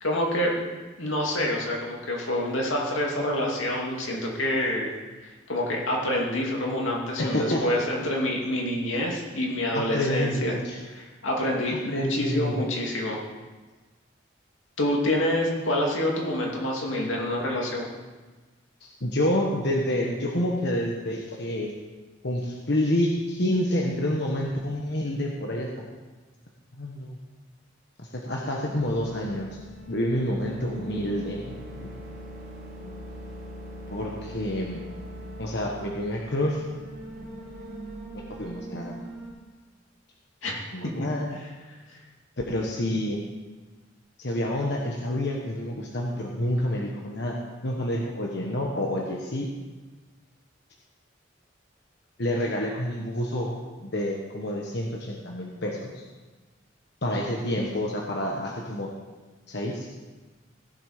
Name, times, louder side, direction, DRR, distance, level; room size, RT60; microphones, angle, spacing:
voice 1, 0.0-0.6 1.0-4.9 5.2-10.5 11.0-13.2 14.8-17.9 40.4-40.6, left 1 dB, 90° left, -1 dB, 2.5 m, -27 dB
voice 2, 7.2-7.6 9.7-10.8 11.4-12.6 18.8-21.7 22.2-25.7 26.8-27.2 28.0-29.5 29.9-31.9 33.9-34.8 35.4-36.6 38.1-39.0 40.7-41.4 42.5-43.2 44.2-47.4 47.6-49.5 52.2-53.6 53.8-56.0 57.0-58.9 59.5-59.9, left 1 dB, 60° left, -1 dB, 1.3 m, -28 dB
sound 1, 28.6-39.3, equal, 50° right, 3.3 m, -41 dB
16.5 x 7.4 x 5.0 m, 1.3 s
head